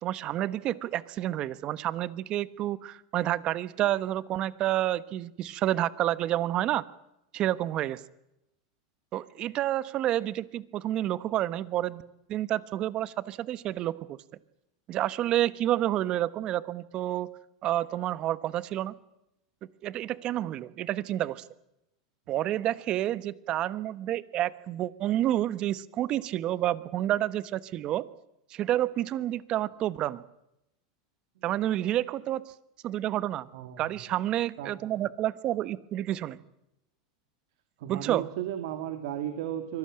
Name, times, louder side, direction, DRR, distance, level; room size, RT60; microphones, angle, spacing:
voice 1, 0.0-6.8 7.3-8.0 9.1-12.0 12.3-14.2 14.9-17.3 17.6-18.9 19.8-21.4 22.3-28.0 28.5-30.2 31.4-32.4 32.8-33.5 33.8-36.4 37.9-38.3, right 13 dB, 40° right, 18 dB, 1.1 m, -29 dB
voice 2, 33.5-34.0 34.6-34.8 37.8-39.8, right 11 dB, 70° right, 8 dB, 2.3 m, -35 dB
24.5 x 18.0 x 8.8 m, 0.86 s
supercardioid pair, 135°, 2 cm